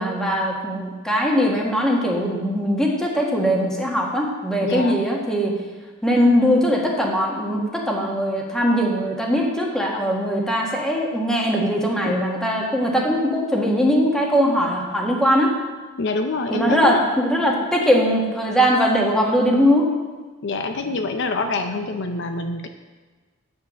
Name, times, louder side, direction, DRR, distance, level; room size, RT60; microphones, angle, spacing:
voice 1, 0.0-5.6 6.0-15.5 16.5-19.9, equal, 5° left, -2 dB, 1.6 m, -20 dB
voice 2, 4.6-5.0 12.0-12.3 16.0-17.1 20.4-22.7, left 3 dB, 55° left, 7 dB, 0.6 m, -26 dB
9.4 x 6.6 x 6.3 m, 1.3 s
head